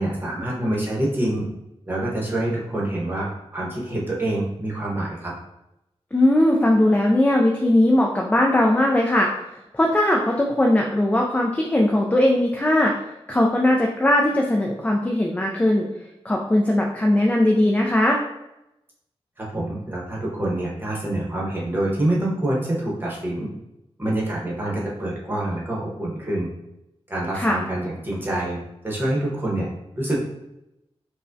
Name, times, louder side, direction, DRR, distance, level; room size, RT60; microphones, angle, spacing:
voice 1, 0.0-1.4 1.9-5.3 19.4-23.5 24.0-26.5 27.1-28.6 28.8-29.7 30.0-30.2, right 1 dB, 20° right, -4 dB, 0.9 m, -26 dB
voice 2, 6.1-9.3 9.7-12.9 13.3-15.9 16.2-18.2 27.3-27.6, left 1 dB, 15° left, 0 dB, 0.3 m, -19 dB
4.6 x 2.1 x 2.6 m, 0.90 s
wide cardioid pair, 115°, 11 cm